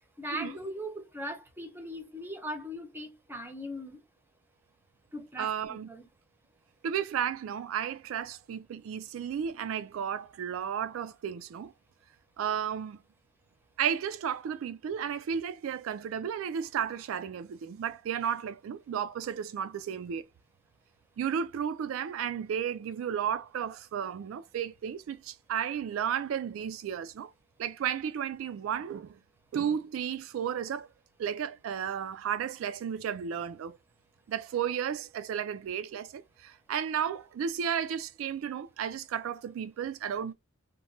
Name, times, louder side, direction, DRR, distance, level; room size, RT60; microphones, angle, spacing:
voice 1, 0.2-4.0 5.1-6.1, equal, 10° right, 0.7 m, -39 dB
voice 2, 5.4-5.9 6.8-11.7 12.4-13.0 13.8-20.3 21.2-27.3 27.6-29.2 29.5-30.9 31.2-33.8 34.3-40.3, right 8 dB, 80° right, 0.3 m, -33 dB
2.9 x 2.1 x 2.6 m
head